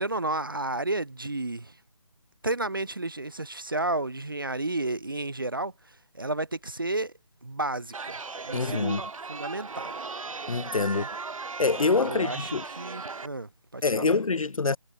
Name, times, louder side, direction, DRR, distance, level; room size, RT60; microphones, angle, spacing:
voice 1, 0.0-1.7 2.4-5.7 6.1-7.1 7.4-9.0 9.3-10.0 10.9-11.1 12.0-14.2, right 2 dB, 40° right, 0.4 m, -32 dB
Chatter, 7.9-13.3, right 4 dB, 70° right, 0.8 m, -37 dB
voice 2, 8.5-9.0 10.5-11.1 11.6-12.6 13.8-14.8, left 4 dB, 75° left, 1.0 m, -25 dB
figure-of-eight pair, 175°, 18 cm